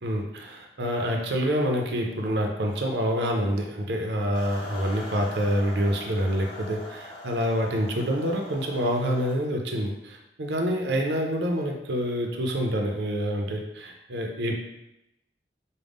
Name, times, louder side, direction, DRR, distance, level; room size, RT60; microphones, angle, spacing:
voice 1, 0.0-14.6, equal, 70° right, 2 dB, 0.6 m, -27 dB
sound 1, 4.3-9.4, left 2 dB, 30° left, 0.8 m, -42 dB
5.0 x 2.1 x 3.5 m, 0.89 s
head